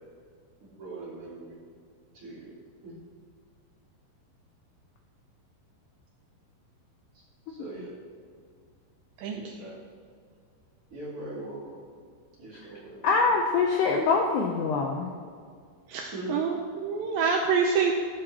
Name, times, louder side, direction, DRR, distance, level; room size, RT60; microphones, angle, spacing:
voice 1, 0.6-1.6 2.1-2.5 2.8-3.0 7.5-7.9 9.3-9.8 10.9-11.8 12.4-13.1 16.1-16.4, right 1 dB, 30° right, -7 dB, 3.8 m, -40 dB
voice 2, 13.0-15.1, left 4 dB, 85° left, 1 dB, 2.4 m, -24 dB
voice 3, 15.9-17.9, right 5 dB, 85° right, 2 dB, 2.6 m, -26 dB
14.0 x 12.5 x 3.0 m, 2.1 s
omnidirectional pair, 5.8 m